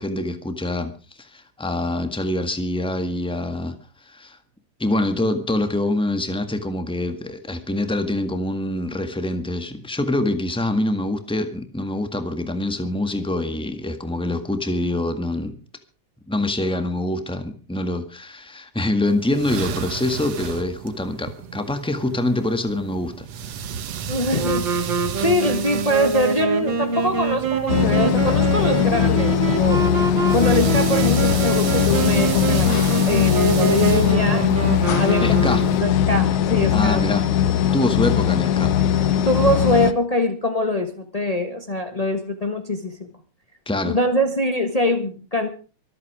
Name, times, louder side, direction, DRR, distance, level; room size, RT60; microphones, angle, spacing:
voice 1, 0.0-3.8 4.0-4.4 4.8-15.5 16.3-23.3 35.2-35.7 36.7-37.2 37.7-38.7 43.6-44.0, left 1 dB, 5° left, 8 dB, 0.9 m, -25 dB
sound 1, 19.1-35.8, right 8 dB, 65° right, 2.3 m, -33 dB
voice 2, 24.1-29.8 30.3-34.5 35.0-37.0 39.2-43.1 43.8-45.5, left 1 dB, 40° left, 6 dB, 0.5 m, -23 dB
Wind instrument woodwind instrument, 24.3-36.1, right 5 dB, 40° right, 2.8 m, -25 dB
sound 2, 27.7-39.9, left 10 dB, 80° left, 2.4 m, -20 dB
25.0 x 8.6 x 4.9 m, 0.36 s
omnidirectional pair, 3.3 m